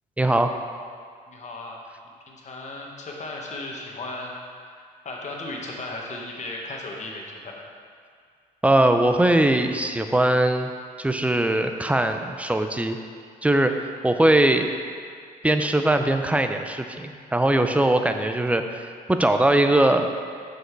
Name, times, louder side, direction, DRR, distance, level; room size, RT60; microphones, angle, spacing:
voice 1, 0.2-0.5 8.6-10.7 11.0-13.0 13.4-14.7 15.4-20.1, right 1 dB, 10° right, 6 dB, 0.5 m, -21 dB
voice 2, 1.3-1.8 2.3-7.5, left 2 dB, 45° left, -1 dB, 1.3 m, -36 dB
6.2 x 5.4 x 4.6 m, 2.1 s
cardioid pair, 85°, 17 cm